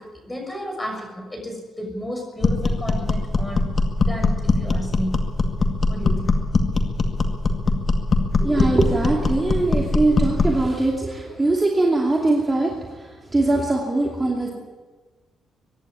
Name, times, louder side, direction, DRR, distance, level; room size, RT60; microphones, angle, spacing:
voice 1, 0.0-3.7 4.1-5.1 5.9-6.4 7.1-7.2, equal, 10° left, 3 dB, 6.3 m, -32 dB
sound 1, 2.4-10.6, left 3 dB, 35° left, 2.2 m, -21 dB
voice 2, 8.4-14.5, right 2 dB, 15° right, -2 dB, 2.7 m, -21 dB
24.0 x 11.0 x 9.9 m, 1.3 s
cardioid pair, 125°, 0 cm